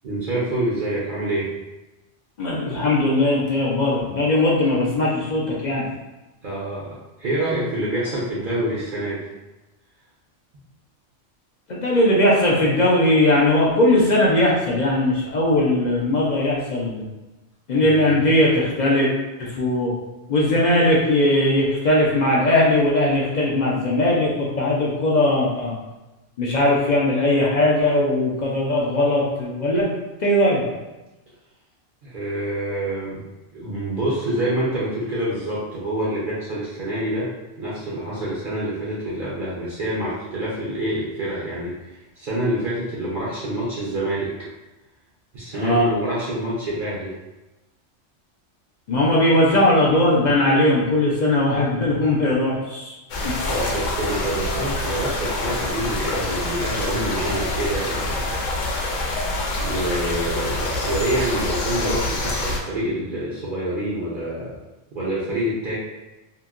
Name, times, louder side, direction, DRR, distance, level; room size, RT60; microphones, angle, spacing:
voice 1, 0.0-1.5 6.4-9.2 17.8-18.0 32.0-33.2 33.5-37.3 37.6-44.3 45.3-47.1 53.5-58.3 59.6-64.6 64.9-65.8, right 1 dB, 50° right, -7 dB, 0.7 m, -26 dB
voice 2, 2.4-5.9 11.7-17.0 17.7-19.1 19.4-19.9 20.3-25.7 26.4-29.9 30.2-30.7 45.5-45.9 48.9-53.0 53.2-53.3, left 1 dB, 55° left, -4 dB, 0.5 m, -19 dB
sound 1, 53.1-62.6, left 2 dB, 90° left, 0.9 m, -26 dB
2.9 x 2.6 x 2.4 m, 1.1 s
omnidirectional pair, 1.3 m